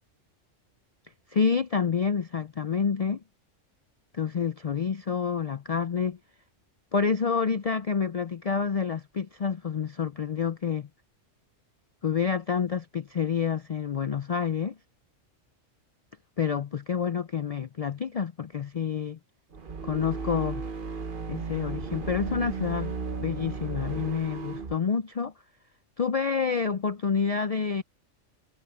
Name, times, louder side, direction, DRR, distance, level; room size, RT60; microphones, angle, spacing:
voice 1, 1.3-3.2 4.1-6.2 6.9-10.9 12.0-14.8 16.4-19.2 19.8-20.6 21.3-22.9 23.2-25.3 26.0-27.8, left 6 dB, 70° left, 0.3 m, -28 dB
sound 1, 19.5-24.8, right 4 dB, 45° right, 1.3 m, -35 dB
omnidirectional pair, 1.3 m